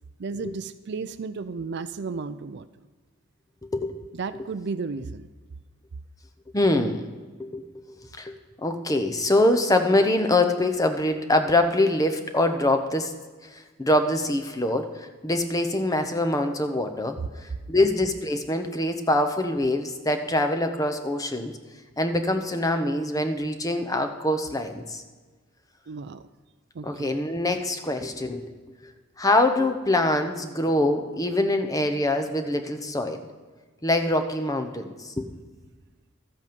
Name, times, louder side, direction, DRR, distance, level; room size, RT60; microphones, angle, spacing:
voice 1, 0.2-2.7 4.1-5.3 25.9-26.3 26.7-27.2, right 4 dB, 55° right, 12 dB, 0.4 m, -33 dB
voice 2, 6.5-7.1 7.4-7.8 8.1-13.1 13.5-17.2 17.7-21.5 22.0-25.0 26.8-28.5 28.8-28.9 29.2-33.2 33.8-35.3, left 1 dB, 15° left, 6 dB, 0.8 m, -24 dB
13.5 x 8.2 x 5.2 m, 1.4 s
head